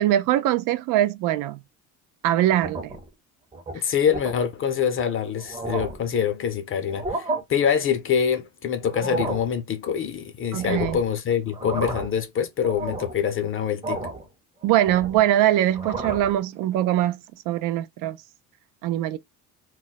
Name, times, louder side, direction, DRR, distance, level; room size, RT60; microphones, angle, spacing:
voice 1, 0.0-1.6 2.2-3.0 10.5-11.0 14.6-17.2 17.5-18.2 18.8-19.2, right 13 dB, 70° right, 0.5 m, -22 dB
sound 1, 2.5-3.1 3.5-3.7 4.1-4.4 5.0-5.1 5.4-6.1 6.8-7.4 8.8-9.5 10.6-11.1 11.5-12.2 12.6-13.2 13.8-14.3 14.6-15.3 15.7-16.3, right 2 dB, 15° right, 0.7 m, -32 dB
voice 2, 3.7-14.0, left 8 dB, 40° left, 0.5 m, -25 dB
2.3 x 2.1 x 3.9 m
cardioid pair, 115°, 34 cm